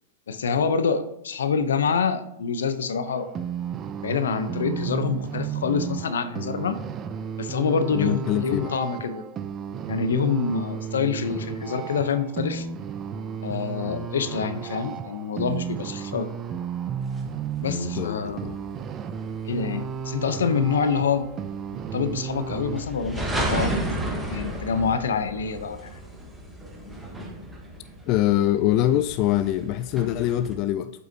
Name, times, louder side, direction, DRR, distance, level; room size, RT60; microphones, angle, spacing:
voice 1, 0.3-3.3 4.0-6.8 7.4-9.2 9.9-12.7 13.4-16.3 17.6-18.4 19.4-21.3 21.7-24.0 24.3-26.0, left 5 dB, 85° left, 11 dB, 0.6 m, -26 dB
sound 1, 3.1-22.8, right 7 dB, 30° right, 0.4 m, -33 dB
voice 2, 7.9-8.8 13.9-14.1 17.7-18.6 28.1-30.9, left 13 dB, 45° left, 11 dB, 0.3 m, -24 dB
sound 2, 17.2-30.5, right 1 dB, 10° right, 1.2 m, -34 dB
7.5 x 5.5 x 2.7 m, 0.82 s
hypercardioid pair, 115°, 0 cm